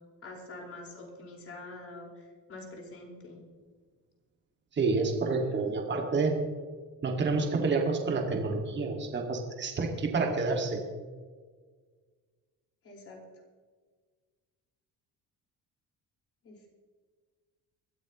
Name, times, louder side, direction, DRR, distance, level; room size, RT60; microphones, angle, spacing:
voice 1, 0.2-3.4 12.8-13.2 16.4-16.7, left 2 dB, 40° left, -1 dB, 4.9 m, -46 dB
voice 2, 4.7-6.4 7.0-10.8, right 4 dB, 30° right, 2 dB, 2.1 m, -29 dB
22.0 x 14.0 x 3.1 m, 1.5 s
cardioid pair, 150°, 35 cm